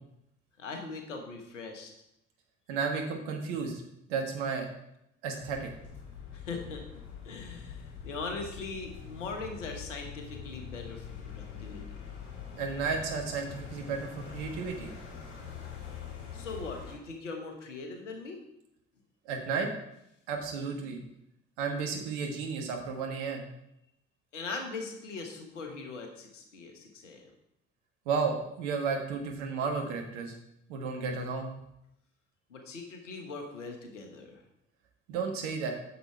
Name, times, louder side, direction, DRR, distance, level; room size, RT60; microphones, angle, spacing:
voice 1, 0.6-1.9 6.3-6.9 7.2-12.0 16.3-18.4 24.3-27.2 32.5-34.4, left 3 dB, 80° left, 4 dB, 1.2 m, -40 dB
voice 2, 2.7-3.8 4.1-4.7 5.2-5.7 12.6-14.9 19.2-19.7 20.3-21.0 21.6-23.4 28.0-30.3 30.7-31.5 35.1-35.7, right 5 dB, 65° right, 2 dB, 1.5 m, -33 dB
sound 1, 5.4-16.9, left 7 dB, 65° left, 3.4 m, -44 dB
8.4 x 6.9 x 4.4 m, 0.82 s
figure-of-eight pair, 50°, 37 cm